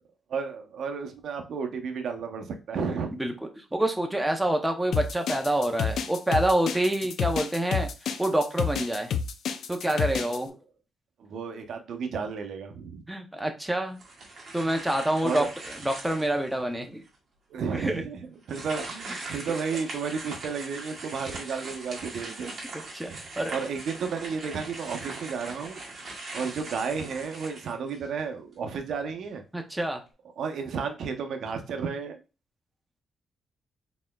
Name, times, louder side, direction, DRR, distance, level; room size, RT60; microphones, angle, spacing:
voice 1, 0.3-3.1 11.2-13.0 15.2-15.5 17.5-18.2 18.5-22.8 23.1-25.8 26.3-29.4 30.4-32.2, right 5 dB, 70° right, 5 dB, 0.7 m, -32 dB
voice 2, 3.7-7.9 8.2-9.1 9.7-10.6 13.1-14.0 14.5-15.4 15.8-17.0 17.7-18.0 22.9-23.1 23.4-23.5 29.5-30.0, right 1 dB, 5° right, 4 dB, 0.6 m, -27 dB
sound 1, 4.9-10.4, left 7 dB, 75° left, 0.4 m, -29 dB
sound 2, 14.0-16.5 17.1-17.2 18.4-28.2, right 2 dB, 45° right, 1.6 m, -40 dB
4.1 x 3.7 x 2.2 m, 0.30 s
cardioid pair, 125°, 0 cm